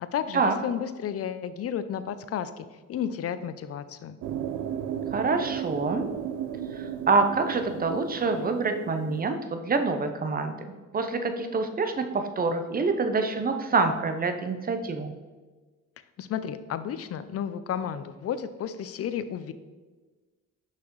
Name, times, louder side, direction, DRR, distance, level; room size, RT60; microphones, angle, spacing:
voice 1, 0.0-4.2 16.2-19.5, left 8 dB, 50° left, 12 dB, 0.5 m, -32 dB
sound 1, 4.2-9.2, right 9 dB, 80° right, 0.5 m, -34 dB
voice 2, 5.1-6.1 6.7-15.1, right 4 dB, 30° right, 7 dB, 0.7 m, -26 dB
6.0 x 5.8 x 3.1 m, 1.3 s
cardioid pair, 90°, 30 cm